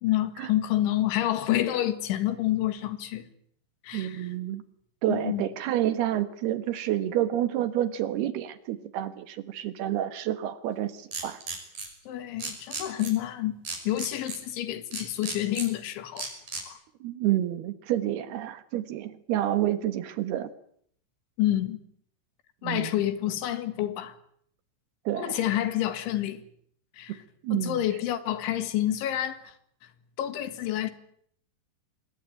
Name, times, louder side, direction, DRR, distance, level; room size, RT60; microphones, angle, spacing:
voice 1, 0.0-3.3 3.8-4.2 5.1-5.4 12.1-13.6 13.9-16.3 16.7-16.8 21.4-21.8 22.6-24.1 25.2-26.4 26.9-27.2 27.5-29.5 30.2-30.9, left 13 dB, 85° left, 4.3 m, -28 dB
voice 2, 3.9-4.6 5.0-11.4 17.0-20.5 22.6-23.0 25.1-25.4 27.1-27.2 27.4-27.8, right 12 dB, 70° right, 3.1 m, -29 dB
sound 1, 11.1-11.9 12.4-13.1 13.6-14.4 14.9-15.7 16.2-16.6, right 4 dB, 45° right, 7.3 m, -34 dB
25.5 x 21.0 x 9.0 m
omnidirectional pair, 5.2 m